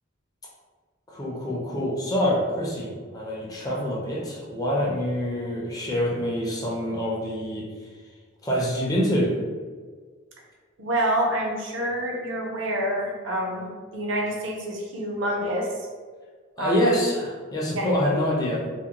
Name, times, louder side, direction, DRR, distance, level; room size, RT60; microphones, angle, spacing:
voice 1, 1.1-7.7 8.4-9.4 16.6-18.7, equal, 20° left, -4 dB, 0.4 m, -26 dB
voice 2, 10.8-15.7 16.6-16.9 17.7-17.9, right 1 dB, 65° right, -1 dB, 0.5 m, -27 dB
2.5 x 2.1 x 2.8 m, 1.5 s
head